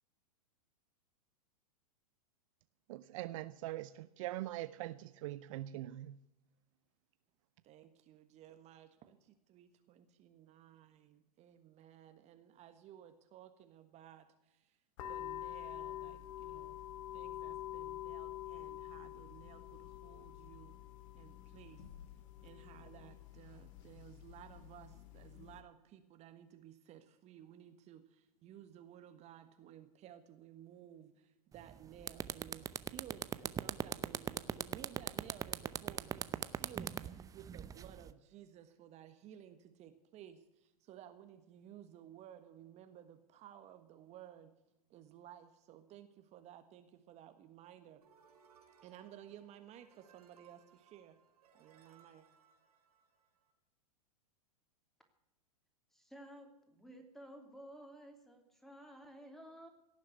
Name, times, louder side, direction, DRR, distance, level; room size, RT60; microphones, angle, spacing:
voice 1, 2.9-6.2, right 15 dB, 55° right, 14 dB, 0.7 m, -42 dB
voice 2, 7.6-14.8 15.1-16.8 17.1-20.8 21.1-21.8 22.4-44.5 44.9-48.1 48.8-51.2 51.5-52.3, right 11 dB, 35° right, 8 dB, 1.5 m, -56 dB
sound 1, 15.0-25.6, left 13 dB, 55° left, 2.4 m, -47 dB
sound 2, 31.6-31.7 32.0-38.1, right 8 dB, 15° right, 0.7 m, -38 dB
sound 3, 48.0-53.5, right 7 dB, 75° right, 4.3 m, -66 dB
voice 3, 55.9-59.7, equal, ahead, 5 dB, 3.0 m, -54 dB
17.5 x 7.5 x 9.5 m, 0.90 s
hypercardioid pair, 115°, 20 cm